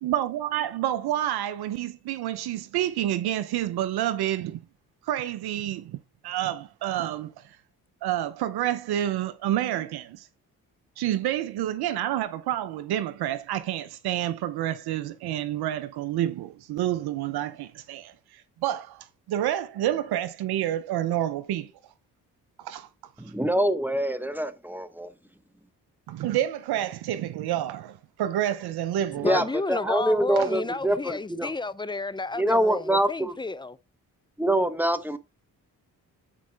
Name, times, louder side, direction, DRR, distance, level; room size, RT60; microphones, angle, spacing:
voice 1, 0.0-4.6 5.1-6.0 6.2-7.6 8.0-10.3 11.0-21.7 22.6-22.9 26.1-29.5 30.4-30.5, right 12 dB, 75° right, 0.7 m, -29 dB
voice 2, 23.2-25.1 29.2-31.5 32.3-33.3 34.4-35.2, right 1 dB, 5° right, 1.0 m, -25 dB
voice 3, 29.2-33.8, left 3 dB, 10° left, 0.5 m, -31 dB
8.5 x 4.7 x 3.4 m
supercardioid pair, 55°, 38 cm